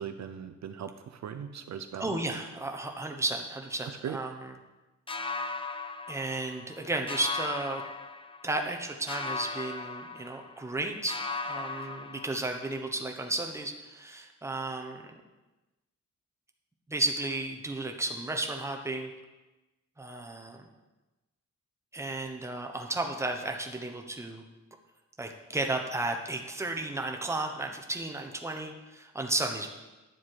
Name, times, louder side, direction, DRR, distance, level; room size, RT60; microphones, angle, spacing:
voice 1, 0.0-2.1 4.0-4.2, right 8 dB, 65° right, 9 dB, 0.6 m, -39 dB
voice 2, 2.0-4.5 6.1-7.8 8.4-15.1 16.9-19.1 20.0-20.7 21.9-24.4 25.2-29.7, right 2 dB, 10° right, 2 dB, 0.9 m, -33 dB
sound 1, 5.1-6.8 7.1-8.7 9.1-10.8 11.1-12.8, left 3 dB, 20° left, 0.5 m, -37 dB
10.5 x 7.3 x 4.7 m, 1.1 s
wide cardioid pair, 160°, 30 cm